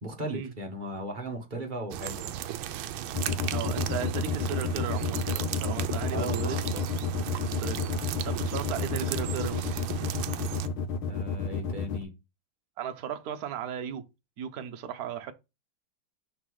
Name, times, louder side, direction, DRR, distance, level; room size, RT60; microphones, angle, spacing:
voice 1, 0.0-2.4 6.1-6.8 11.1-12.1, right 1 dB, 25° right, 1.3 m, -37 dB
sound 1, 1.9-10.7, right 11 dB, 75° right, 1.4 m, -36 dB
sound 2, 3.1-12.0, left 5 dB, 80° left, 1.7 m, -30 dB
voice 2, 3.5-6.9 7.5-7.9 8.2-9.7 12.8-14.1 14.4-15.3, right 8 dB, 55° right, 1.1 m, -36 dB
5.8 x 4.0 x 4.7 m
omnidirectional pair, 2.3 m